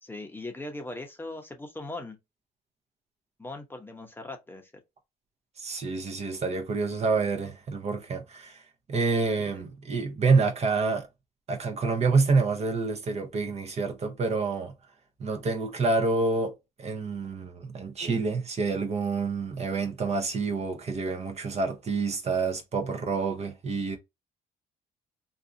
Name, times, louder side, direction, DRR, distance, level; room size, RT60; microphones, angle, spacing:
voice 1, 0.0-2.2 3.4-4.7 9.5-9.6, left 2 dB, 10° left, 0.8 m, -39 dB
voice 2, 5.6-8.6 8.9-11.1 11.5-14.7 15.2-16.5 16.8-24.0, right 4 dB, 40° right, 0.7 m, -27 dB
2.6 x 2.3 x 2.6 m
cardioid pair, 95°, 17 cm